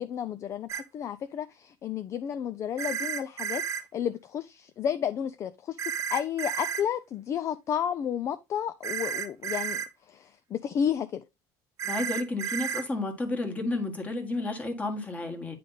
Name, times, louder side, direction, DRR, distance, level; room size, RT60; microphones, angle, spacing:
voice 1, 0.0-3.6 3.9-9.8 10.1-11.2, left 9 dB, 35° left, 0.4 m, -32 dB
sound 1, 0.7-0.8 2.8-3.8 5.8-6.8 8.8-9.9 11.8-12.8, right 8 dB, 35° right, 0.8 m, -32 dB
voice 2, 11.8-15.6, left 2 dB, 15° left, 1.5 m, -31 dB
9.1 x 3.4 x 3.9 m
cardioid pair, 140°, 9 cm